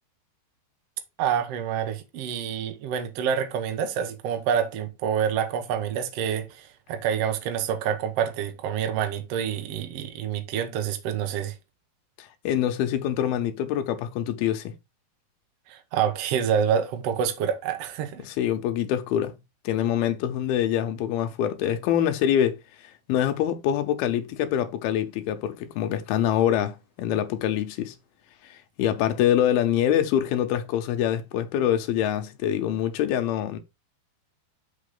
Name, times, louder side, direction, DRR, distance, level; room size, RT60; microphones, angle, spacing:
voice 1, 1.2-11.5 15.7-18.2, right 8 dB, 85° right, 1.3 m, -27 dB
voice 2, 12.2-14.7 18.2-19.4 19.6-22.6 23.1-28.0 28.4-33.6, left 10 dB, 80° left, 2.7 m, -25 dB
6.6 x 5.8 x 3.8 m
omnidirectional pair, 4.6 m